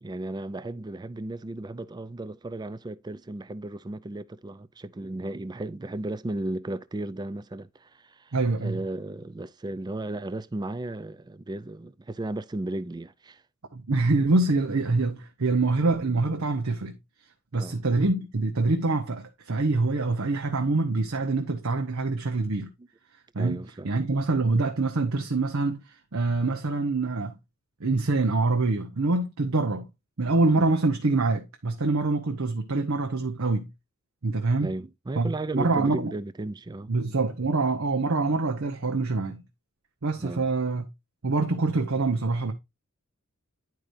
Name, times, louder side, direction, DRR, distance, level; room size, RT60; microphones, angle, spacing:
voice 1, 0.0-8.3 8.6-13.4 17.5-17.8 23.4-23.9 30.6-30.7 34.6-36.9 40.2-40.4, right 2 dB, 20° right, 0.4 m, -35 dB
voice 2, 8.3-8.8 13.7-16.9 17.5-22.7 23.3-27.4 27.8-29.9 30.2-33.7 34.2-34.7 35.2-36.1 36.9-39.4 40.0-40.9 41.2-42.5, right 3 dB, 70° right, 0.9 m, -25 dB
10.5 x 4.8 x 2.6 m
head